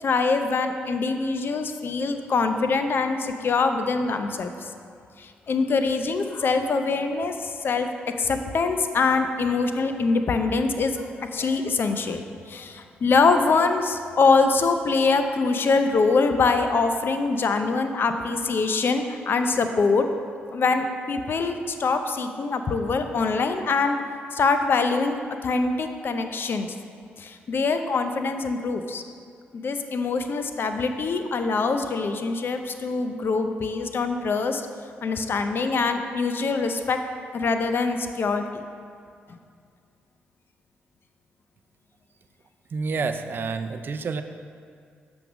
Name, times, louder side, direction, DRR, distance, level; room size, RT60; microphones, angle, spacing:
voice 1, 0.0-4.7 5.2-12.2 12.5-20.0 20.5-24.0 24.3-26.7 27.2-29.0 29.5-34.6 35.0-37.0 37.3-38.6 39.3-39.4, left 4 dB, 55° left, 7 dB, 0.5 m, -24 dB
voice 2, 42.7-44.2, right 4 dB, 50° right, 9 dB, 0.4 m, -28 dB
7.7 x 3.5 x 6.1 m, 2.3 s
supercardioid pair, 60°, 4 cm